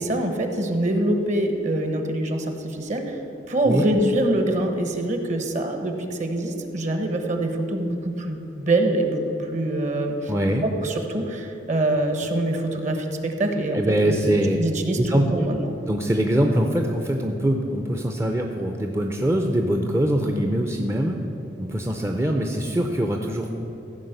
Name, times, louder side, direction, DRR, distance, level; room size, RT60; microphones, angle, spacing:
voice 1, 0.0-3.2 3.5-9.2 9.5-10.3 10.6-13.8 14.1-15.7, right 1 dB, 45° right, 5 dB, 1.2 m, -24 dB
voice 2, 10.3-10.7 13.7-14.6 15.0-15.5 15.9-21.2 21.6-23.5, right 1 dB, 15° right, 3 dB, 0.6 m, -23 dB
15.0 x 5.2 x 8.0 m, 2.9 s
head